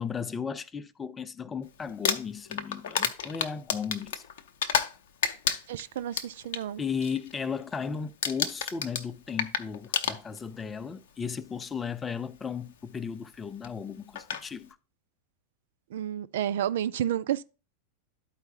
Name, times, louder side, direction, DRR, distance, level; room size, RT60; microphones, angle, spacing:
voice 1, 0.0-4.2 6.8-14.8, left 6 dB, 15° left, 0.4 m, -35 dB
Crumpling crinkling, 1.9-5.0 5.2-6.6 7.0-7.3 7.6-7.9 8.2-10.6 11.5-11.6 13.6-13.7 14.1-14.4, left 7 dB, 55° left, 0.6 m, -30 dB
voice 2, 5.7-6.8 15.9-17.4, right 10 dB, 55° right, 0.3 m, -30 dB
12.0 x 4.6 x 2.8 m
figure-of-eight pair, 90°, 0 cm